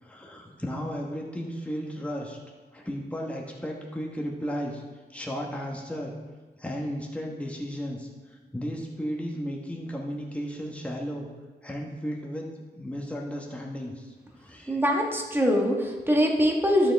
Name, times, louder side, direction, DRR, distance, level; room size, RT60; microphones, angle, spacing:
voice 1, 0.0-2.4 2.7-4.8 5.1-6.1 6.6-11.3 11.6-14.8, equal, 5° left, -2 dB, 1.3 m, -34 dB
voice 2, 14.7-16.9, equal, 10° right, 0 dB, 1.5 m, -23 dB
12.0 x 6.5 x 3.5 m, 1.4 s
wide cardioid pair, 90°, 18 cm